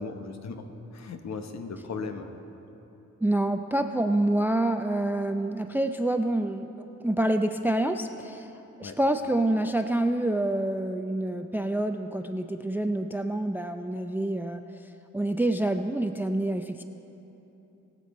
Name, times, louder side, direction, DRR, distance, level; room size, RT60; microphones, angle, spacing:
voice 1, 0.0-2.3 8.8-9.0, left 4 dB, 65° left, 6 dB, 1.1 m, -37 dB
voice 2, 3.2-8.5 8.8-16.8, right 1 dB, 5° right, 8 dB, 0.4 m, -27 dB
21.0 x 7.6 x 4.3 m, 3.0 s
cardioid pair, 80°, 29 cm